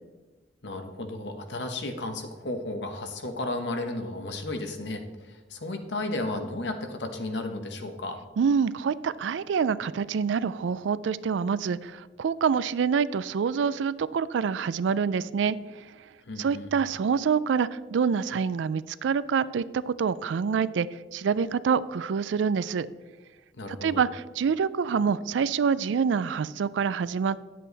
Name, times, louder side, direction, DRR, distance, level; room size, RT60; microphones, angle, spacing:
voice 1, 0.6-8.2 16.2-16.7 23.5-24.0, left 2 dB, 70° left, 6 dB, 1.1 m, -34 dB
voice 2, 8.4-15.8 16.4-22.9 23.7-27.4, right 6 dB, 80° right, 17 dB, 0.4 m, -26 dB
10.0 x 7.6 x 4.0 m, 1.3 s
head